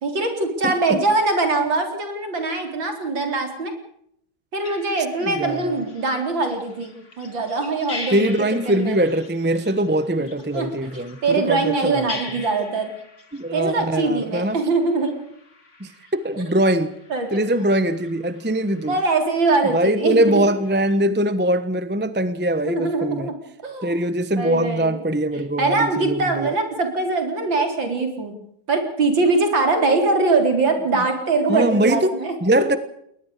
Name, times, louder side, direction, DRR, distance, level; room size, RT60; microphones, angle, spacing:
voice 1, 0.0-3.7 4.5-8.3 8.7-9.0 10.5-10.7 11.2-12.9 13.5-15.1 17.1-17.3 18.9-20.4 22.6-23.4 23.6-23.9 24.3-25.0 25.6-28.4 28.7-32.6, right 3 dB, 65° right, 5 dB, 4.7 m, -22 dB
voice 2, 0.6-1.0 5.2-5.8 8.1-12.2 13.3-14.6 15.8-16.9 17.3-19.0 19.7-23.3 23.8-26.5 31.5-32.8, right 1 dB, 10° right, 13 dB, 0.6 m, -22 dB
sound 1, 4.6-21.0, left 3 dB, 35° left, 2.7 m, -42 dB
21.0 x 20.0 x 6.6 m, 0.70 s
omnidirectional pair, 2.2 m